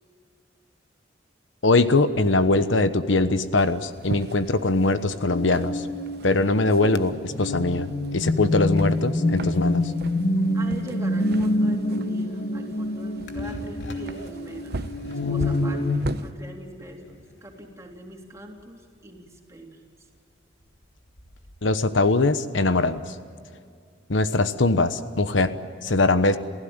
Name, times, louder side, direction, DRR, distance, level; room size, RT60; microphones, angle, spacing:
voice 1, 1.6-5.9 6.2-9.9 21.6-23.1 24.1-25.5 25.8-26.4, left 2 dB, 85° left, 11 dB, 1.1 m, -22 dB
sound 1, 3.6-16.3, right 2 dB, 60° right, 0.9 m, -39 dB
sound 2, 5.2-16.0, left 1 dB, 45° left, 1.7 m, -26 dB
voice 2, 10.5-14.8 15.3-19.8, right 1 dB, 15° right, 1 dB, 3.5 m, -42 dB
sound 3, 12.9-21.9, equal, 70° left, 2.7 m, -44 dB
28.5 x 16.0 x 8.9 m, 2.2 s
head